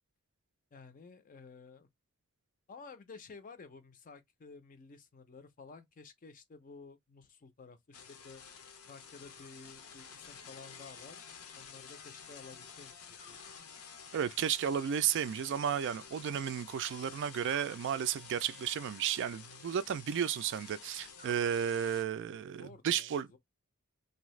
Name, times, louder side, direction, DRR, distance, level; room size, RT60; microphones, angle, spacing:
voice 1, 0.7-1.9 2.7-8.4 8.9-11.2 11.6-13.4 22.5-23.4, left 4 dB, 40° left, 0.5 m, -53 dB
sound 1, 7.9-22.0, left 6 dB, 80° left, 0.7 m, -51 dB
sound 2, 9.2-10.1 13.2-14.2 17.4-18.5 21.1-22.1, left 1 dB, 20° right, 0.7 m, -61 dB
voice 2, 14.1-23.4, right 8 dB, 55° right, 0.3 m, -33 dB
2.7 x 2.4 x 3.0 m
head